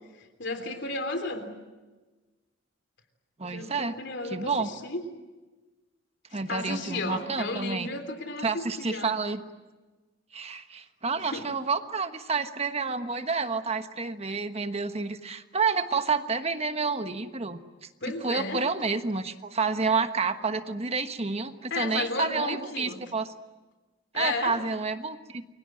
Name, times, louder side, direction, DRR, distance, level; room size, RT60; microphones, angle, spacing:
voice 1, 0.2-1.5 3.4-5.0 6.3-9.1 11.2-11.5 18.0-18.7 21.7-23.0 24.1-24.6, left 2 dB, 65° left, 8 dB, 3.4 m, -34 dB
voice 2, 3.4-4.0 4.2-4.7 6.3-7.9 8.4-9.4 10.3-17.6 18.1-23.3 24.1-25.4, right 4 dB, 35° right, 9 dB, 1.3 m, -29 dB
29.0 x 23.5 x 7.8 m, 1.2 s
head